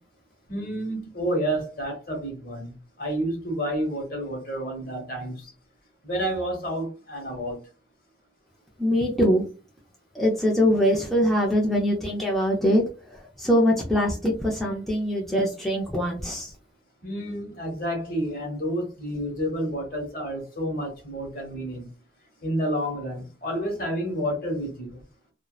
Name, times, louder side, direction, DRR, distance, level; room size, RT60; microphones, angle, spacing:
voice 1, 0.5-5.5 6.0-7.6 17.0-21.8 22.4-25.0, equal, 50° left, 1.0 m, -30 dB
voice 2, 8.8-9.4 10.1-12.8 13.1-16.5, equal, ahead, 0.4 m, -23 dB
2.6 x 2.0 x 2.3 m
head